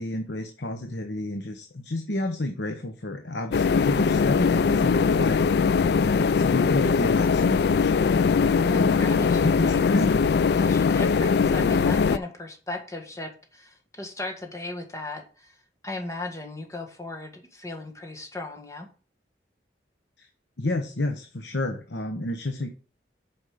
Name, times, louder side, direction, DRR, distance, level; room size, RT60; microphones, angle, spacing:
voice 1, 0.0-7.9 8.4-8.9 9.4-10.2 20.2-20.3 20.6-22.7, left 1 dB, 80° left, 5 dB, 1.1 m, -30 dB
sound 1, 3.5-12.2, left 5 dB, 65° left, 0.3 m, -21 dB
voice 2, 8.6-10.0 10.5-18.9, left 2 dB, 15° left, 3 dB, 1.7 m, -37 dB
8.8 x 5.4 x 5.1 m, 0.37 s
head